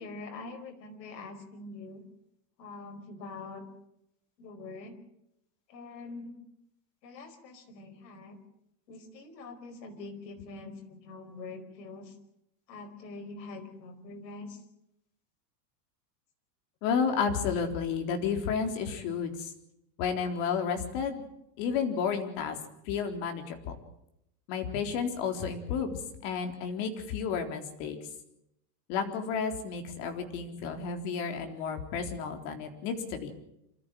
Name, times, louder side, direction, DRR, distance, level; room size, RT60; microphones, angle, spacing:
voice 1, 0.0-2.0 2.6-3.7 4.4-5.0 5.7-6.3 7.0-8.4 8.9-12.1 12.7-14.6, left 3 dB, 85° left, 6 dB, 5.1 m, -44 dB
voice 2, 16.8-19.5 20.0-21.2 21.6-22.6 22.9-23.7 24.5-28.0 28.9-33.3, left 6 dB, 50° left, 5 dB, 3.9 m, -31 dB
27.0 x 14.0 x 7.7 m, 0.81 s
supercardioid pair, 155°, 49 cm